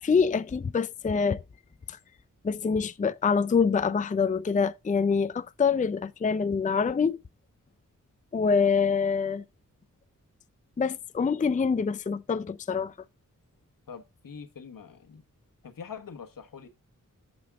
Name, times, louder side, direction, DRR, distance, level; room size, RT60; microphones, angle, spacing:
voice 1, 0.0-1.4 1.9-2.0 2.4-7.2 8.3-9.4 10.8-12.9, left 5 dB, 25° left, 0.4 m, -25 dB
voice 2, 13.9-15.2 15.6-16.7, left 6 dB, 80° left, 1.2 m, -44 dB
14.5 x 5.3 x 2.3 m
cardioid pair, 50°, 33 cm